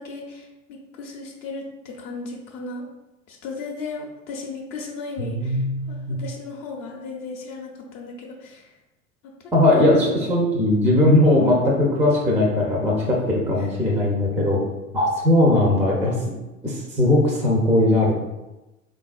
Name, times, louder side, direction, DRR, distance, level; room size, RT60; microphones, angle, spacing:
voice 1, 0.0-2.9 3.3-8.7 9.2-10.2 12.9-13.3 13.6-13.9, left 3 dB, 60° left, -1 dB, 0.6 m, -36 dB
voice 2, 5.2-6.2 9.5-14.6 14.9-16.2 16.6-18.2, left 1 dB, 5° right, -2 dB, 0.3 m, -19 dB
3.2 x 2.4 x 2.4 m, 1.0 s
hypercardioid pair, 85°, 40 cm